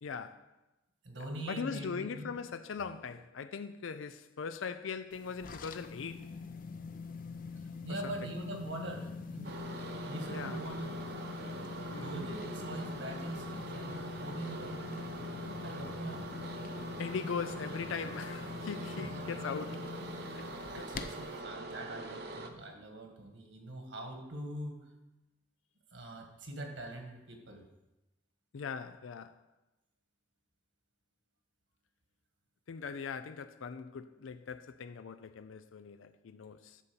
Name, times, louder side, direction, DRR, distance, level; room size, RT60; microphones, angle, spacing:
voice 1, 0.0-0.4 1.5-6.3 8.0-8.1 10.3-10.6 11.9-12.1 17.0-19.8 20.8-20.9 28.5-29.4 32.7-36.8, left 5 dB, 90° left, 0.4 m, -40 dB
voice 2, 1.0-2.4 7.6-9.6 10.1-11.0 12.0-15.1 15.6-16.2 19.0-19.5 20.4-24.7 25.9-27.6, right 1 dB, 70° right, 1.7 m, -43 dB
sound 1, 5.1-21.4, left 4 dB, 45° left, 0.6 m, -44 dB
sound 2, 9.4-22.5, right 2 dB, 55° right, 0.8 m, -43 dB
10.5 x 4.2 x 6.8 m
head